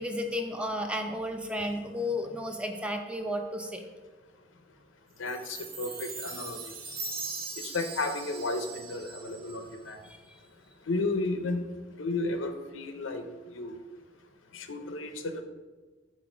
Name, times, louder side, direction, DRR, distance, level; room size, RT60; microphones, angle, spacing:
voice 1, 0.0-3.8 10.0-10.2, left 1 dB, 5° right, 4 dB, 0.5 m, -33 dB
voice 2, 5.2-6.7 7.6-10.0 10.9-11.6 12.0-13.2 13.5-13.8 14.5-15.4, left 2 dB, 90° left, 7 dB, 0.7 m, -33 dB
Chime, 5.3-9.7, right 4 dB, 50° right, 0.9 m, -40 dB
6.2 x 3.8 x 5.0 m, 1.3 s
head